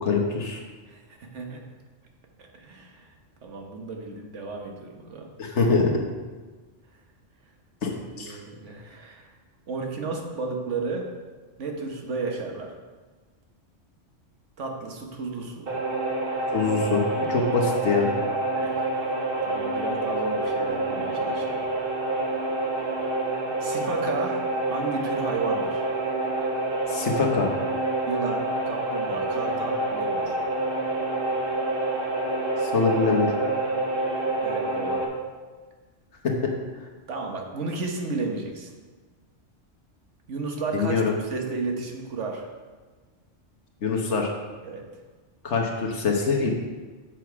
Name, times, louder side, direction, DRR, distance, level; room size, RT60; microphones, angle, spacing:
voice 1, 0.0-0.6 5.4-5.9 7.8-7.9 8.2-8.4 16.5-18.1 26.9-27.5 32.6-33.3 36.2-36.3 40.7-41.1 43.8-44.3 45.4-46.5, left 4 dB, 70° left, 1 dB, 1.4 m, -24 dB
voice 2, 0.9-1.6 2.4-3.1 3.4-5.3 7.9-9.3 9.7-11.1 11.6-12.8 14.6-15.8 18.6-19.0 19.4-21.6 23.6-25.8 28.0-30.4 34.4-35.1 37.1-38.7 40.3-42.5 44.6-44.8, right 3 dB, 75° right, 2 dB, 1.4 m, -33 dB
sound 1, 15.7-35.0, right 2 dB, 50° right, 1.2 m, -27 dB
7.6 x 6.1 x 4.7 m, 1.4 s
omnidirectional pair, 1.3 m